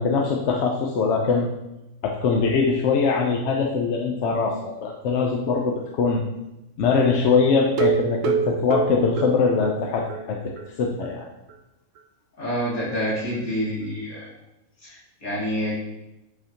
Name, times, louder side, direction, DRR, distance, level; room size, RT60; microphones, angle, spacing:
voice 1, 0.0-1.5 2.0-6.2 6.8-10.5 10.8-11.3, left 5 dB, 65° left, 0 dB, 0.8 m, -22 dB
sound 1, 7.7-10.2 10.6-10.7 11.0-11.1 11.5-11.6, right 7 dB, 70° right, 1.0 m, -26 dB
voice 2, 12.4-14.3 14.8-15.7, equal, 80° left, -8 dB, 2.3 m, -27 dB
7.8 x 4.3 x 2.8 m, 0.96 s
omnidirectional pair, 1.5 m